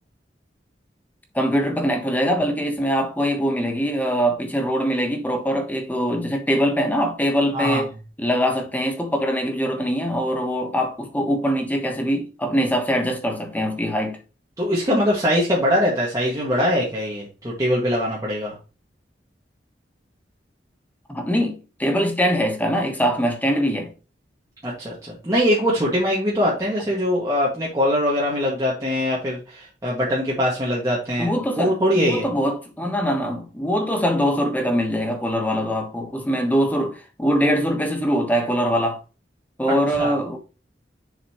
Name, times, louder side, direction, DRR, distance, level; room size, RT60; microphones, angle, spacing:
voice 1, 1.3-7.9 8.2-14.2 21.1-23.9 31.2-39.0 39.6-40.4, equal, 10° left, 1.2 m, -23 dB
voice 2, 14.6-18.6 24.6-32.3 40.0-40.1, equal, 20° right, 1.9 m, -22 dB
7.0 x 5.8 x 3.0 m
head